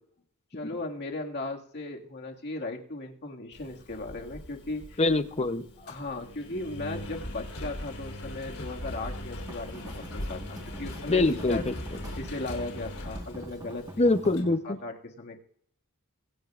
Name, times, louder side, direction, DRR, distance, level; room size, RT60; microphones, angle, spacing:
voice 1, 0.5-5.0 5.8-11.7 12.2-14.1 14.6-15.4, left 2 dB, 50° left, 1 dB, 2.0 m, -37 dB
Engine, 3.5-14.4, left 1 dB, 70° left, 3.9 m, -40 dB
voice 2, 5.0-5.7 11.1-11.7 14.0-14.8, left 2 dB, 30° left, 11 dB, 0.7 m, -24 dB
sound 1, 9.4-14.6, right 1 dB, 15° right, 1.4 m, -45 dB
24.0 x 10.0 x 2.5 m, 0.65 s
head